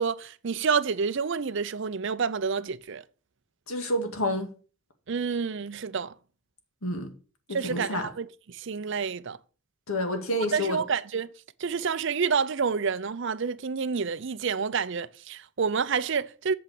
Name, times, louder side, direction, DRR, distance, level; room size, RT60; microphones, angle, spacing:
voice 1, 0.0-3.0 5.1-6.1 7.5-9.4 10.5-11.3 11.6-16.5, right 5 dB, 55° right, 0.5 m, -28 dB
voice 2, 3.7-4.5 6.8-7.1 7.5-8.1 9.9-10.8, left 1 dB, 80° left, 2.0 m, -29 dB
8.0 x 6.0 x 6.7 m
head